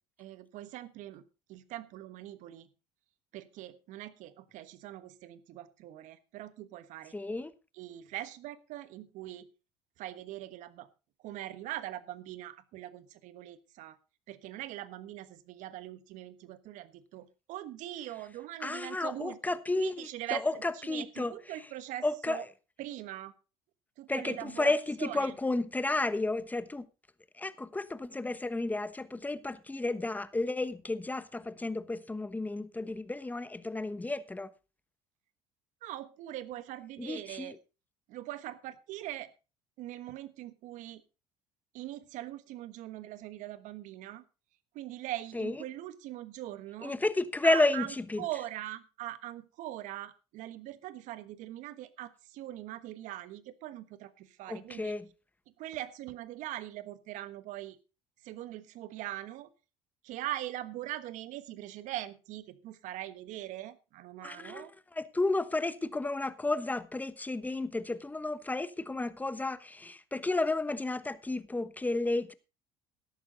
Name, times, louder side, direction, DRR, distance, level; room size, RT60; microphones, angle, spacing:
voice 1, 0.2-1.2 1.5-2.7 3.3-7.1 7.8-9.5 10.0-10.9 11.2-14.0 14.3-19.4 19.8-22.4 22.8-23.3 24.0-24.7 25.0-25.3 35.8-37.5 38.1-39.3 39.8-41.0 41.7-44.2 44.7-47.0 47.4-55.0 55.6-57.8 58.2-59.5 60.0-64.7, right 14 dB, 65° right, 1.3 m, -42 dB
voice 2, 7.1-7.5 18.6-21.3 22.0-22.4 24.1-26.9 27.4-34.5 37.0-37.6 45.3-45.5 46.8-48.3 54.5-55.1 64.2-64.7 64.9-72.3, left 2 dB, 10° left, 1.1 m, -32 dB
13.5 x 11.0 x 3.9 m
supercardioid pair, 80°, 14 cm